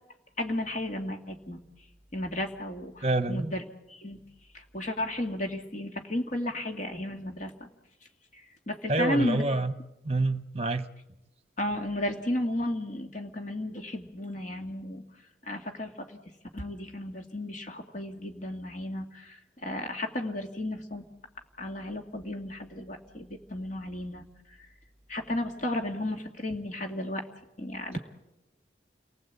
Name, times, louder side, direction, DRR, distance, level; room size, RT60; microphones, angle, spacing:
voice 1, 0.4-1.6 2.1-3.6 3.9-4.2 4.5-7.5 8.3-9.4 11.6-15.0 15.4-16.2 16.5-21.0 21.6-24.2 25.1-27.2 27.6-28.0, left 1 dB, 45° left, 2.1 m, -33 dB
voice 2, 3.0-3.5 8.9-9.7 10.0-10.9, right 2 dB, 35° right, 1.0 m, -27 dB
29.5 x 20.0 x 8.3 m
head